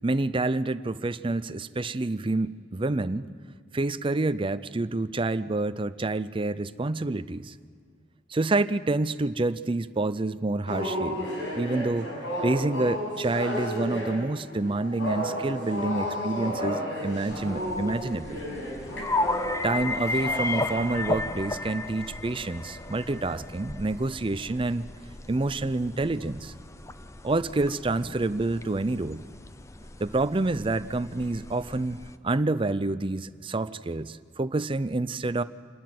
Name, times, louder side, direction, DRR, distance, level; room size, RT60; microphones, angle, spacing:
voice 1, 0.0-3.3 3.7-7.5 8.3-11.2 11.5-12.1 12.4-18.4 19.6-24.8 25.3-26.5 27.2-29.2 30.0-32.0 32.2-35.4, right 2 dB, 30° right, 14 dB, 0.5 m, -28 dB
sound 1, 10.7-21.0 21.6-21.8 22.4-22.7 23.1-23.4, equal, 85° left, 6.3 m, -33 dB
sound 2, 17.3-32.2, left 2 dB, 15° left, 0.6 m, -35 dB
27.0 x 12.0 x 9.4 m, 2.1 s
head